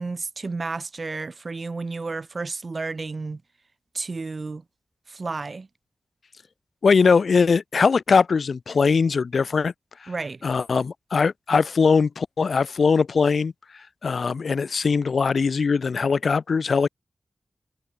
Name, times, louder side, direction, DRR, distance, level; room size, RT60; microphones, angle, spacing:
voice 1, 0.0-3.4 3.9-4.6 5.1-5.7 10.1-10.4, right 3 dB, 50° right, 3.9 m, -31 dB
voice 2, 6.8-9.7 10.0-10.1 10.4-13.5 14.0-16.9, left 5 dB, 75° left, 6.3 m, -21 dB
wide cardioid pair, 95°, 0 cm